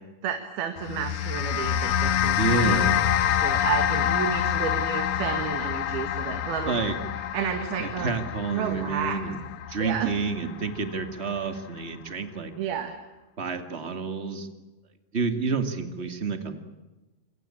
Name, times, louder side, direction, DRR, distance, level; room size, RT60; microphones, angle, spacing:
voice 1, 0.2-2.9 3.4-6.8 7.3-8.2 8.5-9.2 9.8-10.1 12.6-12.9, right 8 dB, 75° right, 7 dB, 3.8 m, -31 dB
sound 1, 0.8-11.3, left 10 dB, 75° left, 1.5 m, -27 dB
voice 2, 2.4-3.0 6.7-7.0 7.8-9.4 9.7-12.5 13.4-14.5 15.1-16.6, right 4 dB, 20° right, 8 dB, 1.8 m, -29 dB
27.5 x 24.5 x 8.7 m, 1.1 s
omnidirectional pair, 4.4 m